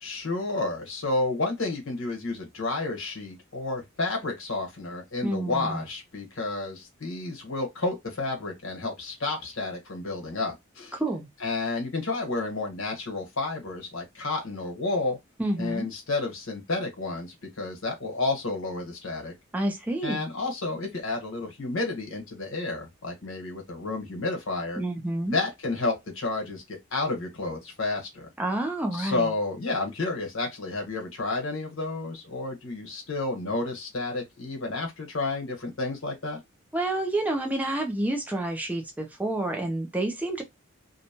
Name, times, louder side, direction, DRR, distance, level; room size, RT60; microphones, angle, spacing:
voice 1, 0.0-10.9 11.4-15.2 15.6-19.3 20.0-24.8 25.2-28.3 28.9-36.4, left 3 dB, 70° left, 1.2 m, -31 dB
voice 2, 5.2-5.8 10.9-11.3 15.4-15.9 19.5-20.2 24.8-25.4 28.4-29.3 36.7-40.4, right 1 dB, 5° right, 0.4 m, -29 dB
2.8 x 2.2 x 2.8 m
head